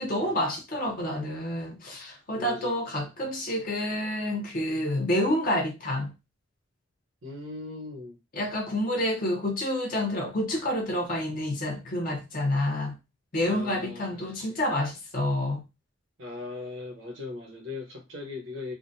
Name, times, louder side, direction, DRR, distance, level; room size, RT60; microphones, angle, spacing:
voice 1, 0.0-6.1 8.3-12.9 13.3-15.6, left 1 dB, 40° left, 0.7 m, -28 dB
voice 2, 2.4-3.1 7.2-8.2 13.4-14.6 16.2-18.7, left 3 dB, 65° right, 0.9 m, -39 dB
3.6 x 2.2 x 2.6 m
head